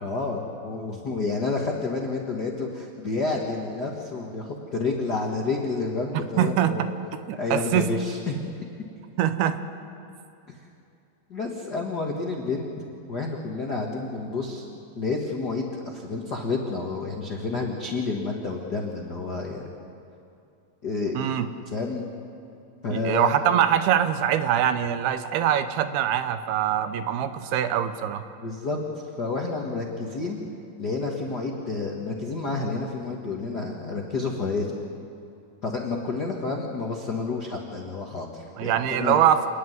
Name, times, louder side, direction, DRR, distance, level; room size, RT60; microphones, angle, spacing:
voice 1, 0.0-6.8 7.3-8.4 11.3-12.7 13.1-14.7 14.9-19.6 20.8-21.2 21.7-22.1 22.8-23.3 28.4-28.8 29.2-30.4 30.8-34.7 35.6-39.2, left 3 dB, 70° left, -1 dB, 0.9 m, -29 dB
voice 2, 6.4-6.9 7.3-7.9 9.2-9.6 21.2-21.5 22.9-28.2 38.6-39.5, right 10 dB, 90° right, 10 dB, 2.8 m, -23 dB
28.0 x 10.5 x 9.3 m, 2.6 s
omnidirectional pair, 4.5 m